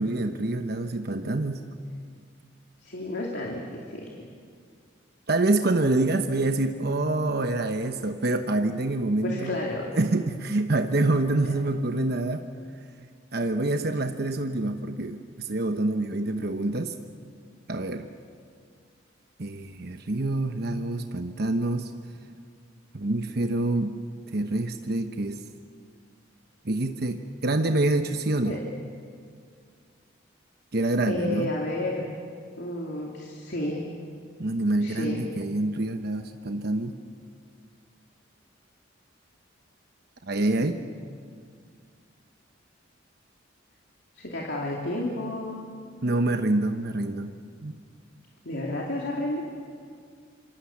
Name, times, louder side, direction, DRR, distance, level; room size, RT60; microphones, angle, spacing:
voice 1, 0.0-1.7 5.3-9.6 10.0-12.4 13.3-16.9 17.7-18.1 19.4-21.9 22.9-24.0 24.3-25.4 26.6-28.6 30.7-31.5 34.4-37.0 40.2-40.8 46.0-47.3 47.6-47.8, right 2 dB, 55° right, 7 dB, 1.1 m, -26 dB
voice 2, 2.8-4.1 9.2-9.9 11.4-11.6 28.4-28.6 31.0-32.0 32.6-33.8 34.8-35.2 44.2-45.7 48.4-49.4, left 1 dB, 60° left, -2 dB, 3.0 m, -31 dB
27.0 x 26.5 x 7.3 m, 2.1 s
head